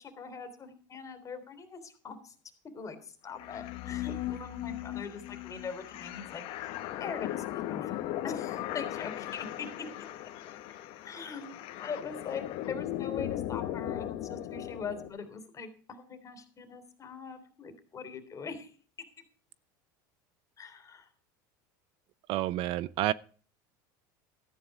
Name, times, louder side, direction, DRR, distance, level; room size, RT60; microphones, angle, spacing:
voice 1, 0.0-2.3 2.7-6.7 7.0-9.9 11.0-11.5 11.8-18.7 20.6-21.1, left 5 dB, 30° left, 3.4 m, -42 dB
sound 1, 3.4-15.1, left 13 dB, 60° left, 1.5 m, -37 dB
voice 2, 22.3-23.1, right 15 dB, 55° right, 0.6 m, -29 dB
14.0 x 9.6 x 4.9 m
supercardioid pair, 100°, 11 cm